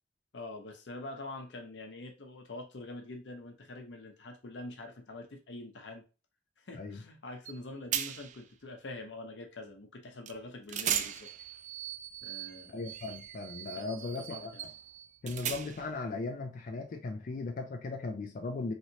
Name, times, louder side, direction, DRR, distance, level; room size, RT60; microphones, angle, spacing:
voice 1, 0.3-6.0 6.6-11.3 12.2-12.8 13.7-14.7, left 2 dB, 85° left, 0.7 m, -45 dB
sound 1, 7.5-7.6 7.9-8.4 10.3-10.4 10.7-16.0, right 9 dB, 45° right, 0.3 m, -38 dB
voice 2, 12.7-14.5 15.2-18.7, left 3 dB, 50° left, 0.4 m, -37 dB
3.1 x 2.8 x 2.7 m
head